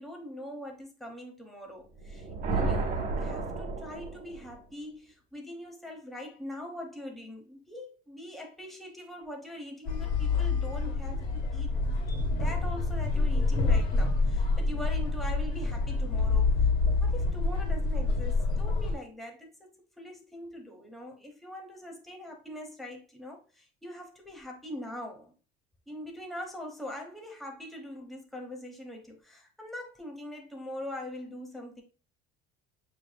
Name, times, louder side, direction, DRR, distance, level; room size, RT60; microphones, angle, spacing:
voice 1, 0.0-11.7 12.3-16.7 17.0-19.7 20.0-25.3 25.9-31.8, left 1 dB, ahead, 0.9 m, -42 dB
sound 1, 2.0-4.6, right 3 dB, 40° right, 1.1 m, -32 dB
sound 2, 9.9-18.9, left 3 dB, 45° left, 1.8 m, -27 dB
6.8 x 3.4 x 2.2 m
cardioid pair, 155°, 21 cm